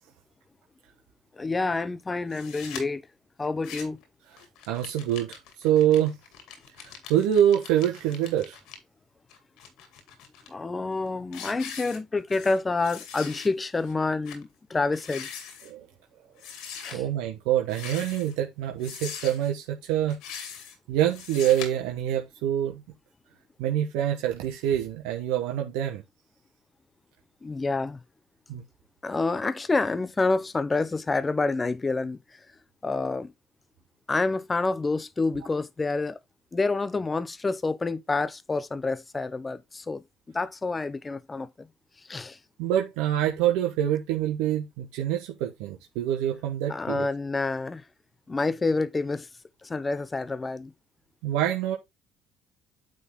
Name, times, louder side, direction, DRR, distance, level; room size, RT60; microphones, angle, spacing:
voice 1, 1.3-3.0 3.4-4.0 10.5-15.3 16.8-17.0 27.4-28.0 29.0-32.2 32.8-33.3 34.1-36.2 36.5-41.7 42.1-42.4 46.7-47.8 48.3-49.3 49.6-50.7, left 3 dB, 25° left, 0.8 m, -28 dB
sound 1, 2.3-2.8 3.4-4.0 4.4-8.8 9.3-10.5 10.9-11.1 11.3-12.6 12.8-13.5 13.8-13.9 14.2-14.4 14.9-15.7 16.4-16.9 17.6-18.3 18.8-19.5 20.1-20.7 21.1-21.7, left 7 dB, 80° left, 2.3 m, -41 dB
voice 2, 4.7-6.1 7.1-8.6 15.6-15.8 16.9-20.2 20.9-22.8 23.6-26.0 28.5-28.6 42.6-47.1 51.2-51.8, right 11 dB, 85° right, 1.2 m, -25 dB
9.1 x 3.9 x 3.7 m
supercardioid pair, 85°, 0 cm